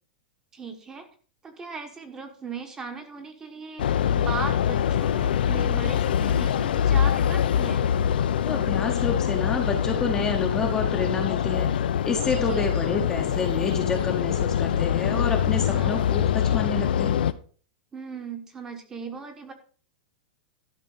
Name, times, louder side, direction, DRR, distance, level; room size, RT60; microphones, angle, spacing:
voice 1, 0.5-1.1 1.4-7.9 12.4-12.7 15.7-15.9 17.9-19.5, right 5 dB, 10° right, 6 dB, 1.1 m, -37 dB
sound 1, 3.8-17.3, left 9 dB, 75° left, 0.7 m, -24 dB
voice 2, 8.4-11.7 12.0-17.2, left 4 dB, 10° left, 2 dB, 0.9 m, -29 dB
12.0 x 5.8 x 5.6 m, 0.42 s
supercardioid pair, 175°, 5 cm